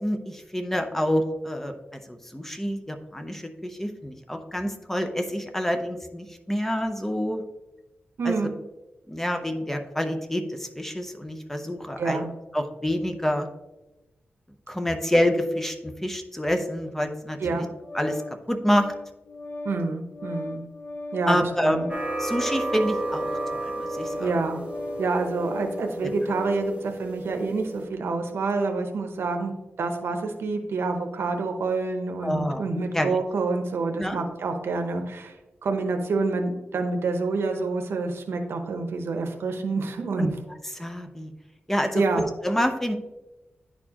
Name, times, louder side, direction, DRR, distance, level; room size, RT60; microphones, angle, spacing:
voice 1, 0.0-7.4 8.2-8.4 9.1-12.2 12.5-13.5 14.7-17.7 17.9-18.2 18.5-18.9 21.3-21.9 22.2-24.3 26.0-26.1 32.2-32.7 32.9-33.2 34.0-34.2 40.2-40.3 40.7-41.3 41.7-42.0 42.4-43.0, equal, 10° left, 5 dB, 0.6 m, -27 dB
voice 2, 8.2-8.5 12.0-12.3 17.4-17.6 19.6-20.6 21.1-21.9 24.2-24.6 25.0-29.5 29.8-35.4 35.6-40.3 41.9-42.2, right 3 dB, 80° right, 5 dB, 0.7 m, -27 dB
Organ, 17.3-26.7, left 2 dB, 50° left, 0.5 m, -38 dB
sound 1, 21.9-27.8, right 2 dB, 30° right, 1.1 m, -32 dB
10.0 x 4.4 x 2.9 m, 1.0 s
wide cardioid pair, 125°, 4 cm